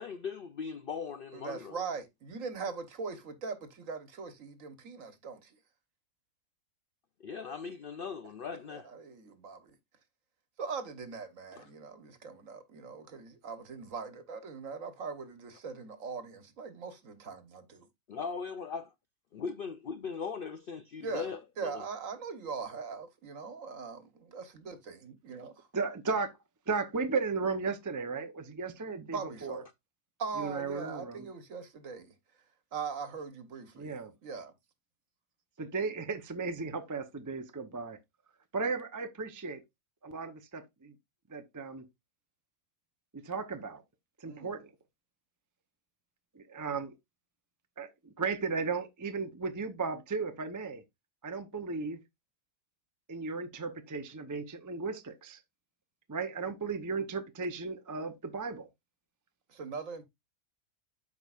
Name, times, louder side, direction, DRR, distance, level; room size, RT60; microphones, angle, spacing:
voice 1, 0.0-1.8 7.2-8.9 11.5-11.7 18.1-18.9 19.3-21.8, left 5 dB, 75° left, 0.5 m, -39 dB
voice 2, 1.3-5.6 8.7-9.7 10.6-17.9 21.0-21.3 21.6-25.7 29.1-29.6 30.2-32.1 32.7-34.5 44.3-44.5 59.5-60.0, right 5 dB, 60° right, 1.5 m, -41 dB
voice 3, 25.7-26.3 26.7-29.6 30.4-31.3 33.7-34.1 35.6-38.0 38.5-39.6 40.0-40.9 41.3-41.8 43.1-43.8 44.2-44.7 46.3-46.9 47.8-50.8 51.2-52.0 53.1-55.4 56.1-58.7, right 4 dB, 25° right, 0.4 m, -35 dB
12.5 x 4.8 x 2.4 m
omnidirectional pair, 1.6 m